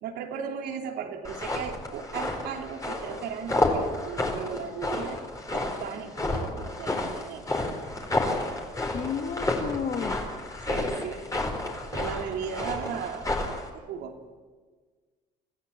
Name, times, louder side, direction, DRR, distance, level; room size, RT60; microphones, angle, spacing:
voice 1, 0.0-5.2 5.5-7.4 10.7-11.2 11.9-14.2, right 7 dB, 80° right, 3 dB, 3.1 m, -36 dB
sound 1, 1.2-13.7, left 2 dB, 20° left, 4.3 m, -30 dB
voice 2, 8.9-10.2 11.9-12.1, left 7 dB, 55° left, 7 dB, 2.1 m, -32 dB
26.0 x 15.0 x 8.7 m, 1.5 s
cardioid pair, 110°, 17 cm